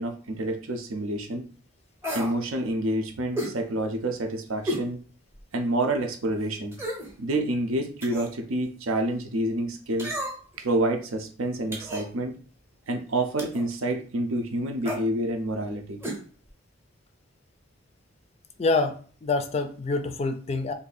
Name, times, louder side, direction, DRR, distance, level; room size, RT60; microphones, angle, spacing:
voice 1, 0.0-1.5 2.1-5.0 5.5-6.8 7.2-10.2 10.6-12.4 12.9-16.0, right 1 dB, 75° right, 5 dB, 0.6 m, -28 dB
sound 1, 2.0-2.4 3.4-3.6 4.7-4.9 5.4-5.5 6.7-7.1 8.0-8.4 10.0-10.6 11.7-12.1 13.4-13.7 14.8-15.0 16.0-16.2 16.5-16.6, equal, 10° right, 0.7 m, -32 dB
voice 2, 18.6-20.7, left 3 dB, 30° left, 8 dB, 0.3 m, -26 dB
2.7 x 2.6 x 4.0 m, 0.41 s
head